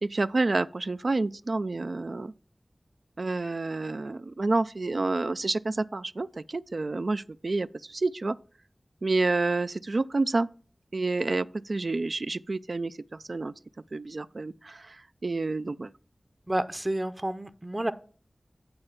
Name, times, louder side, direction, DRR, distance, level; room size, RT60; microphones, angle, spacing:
voice 1, 0.0-2.3 3.2-8.4 9.0-10.5 10.9-13.0 13.3-13.5 13.9-15.0 15.2-15.9, right 3 dB, 70° right, 0.4 m, -29 dB
voice 2, 16.5-17.9, right 1 dB, 25° right, 0.7 m, -30 dB
8.7 x 4.4 x 7.1 m
wide cardioid pair, 45°, 0 cm